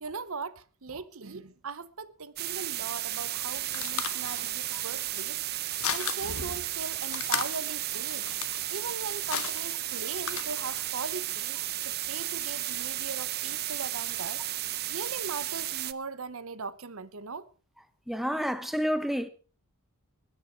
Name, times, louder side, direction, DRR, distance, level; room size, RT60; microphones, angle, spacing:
voice 1, 0.0-5.4 5.9-8.2 8.7-17.5, right 4 dB, 65° right, 0.9 m, -39 dB
sound 1, 2.4-15.9, right 14 dB, 45° right, 0.7 m, -34 dB
sound 2, 3.2-10.9, left 8 dB, 70° left, 1.3 m, -37 dB
voice 2, 18.1-19.3, equal, ahead, 1.0 m, -29 dB
20.5 x 10.5 x 4.7 m
head